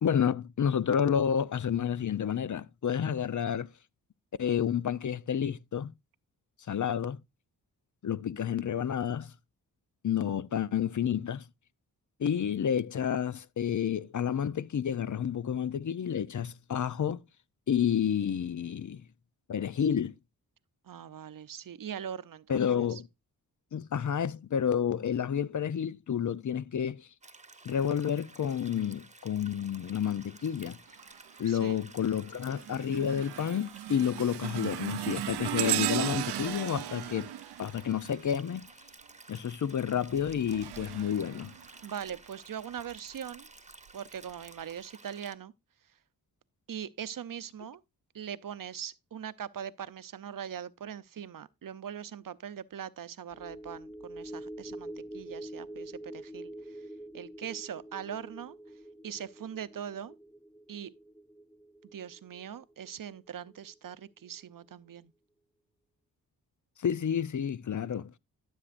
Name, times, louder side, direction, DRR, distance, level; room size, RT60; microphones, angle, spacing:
voice 1, 0.0-3.7 4.4-5.9 6.7-7.2 8.0-9.3 10.0-11.4 12.2-17.2 17.7-19.0 19.5-20.1 22.5-23.1 23.7-27.1 27.6-30.8 31.4-37.3 37.6-38.6 39.3-41.5 66.8-68.1, left 8 dB, 50° left, 0.6 m, -30 dB
voice 2, 20.8-23.0 31.5-31.8 41.8-43.5 43.9-45.5 46.7-47.8 48.1-56.8 57.1-58.6 59.0-60.1 60.7-60.9 61.9-65.1, right 9 dB, 55° right, 0.7 m, -41 dB
sound 1, 27.2-45.3, right 3 dB, 20° right, 1.2 m, -53 dB
sound 2, 31.0-31.4 31.9-38.7 39.9-42.2 42.8-43.0 43.9-44.0, right 13 dB, 90° right, 0.6 m, -36 dB
sound 3, 53.3-63.9 64.3-64.4, right 1 dB, 5° left, 0.5 m, -46 dB
13.0 x 7.4 x 2.6 m
cardioid pair, 45°, 39 cm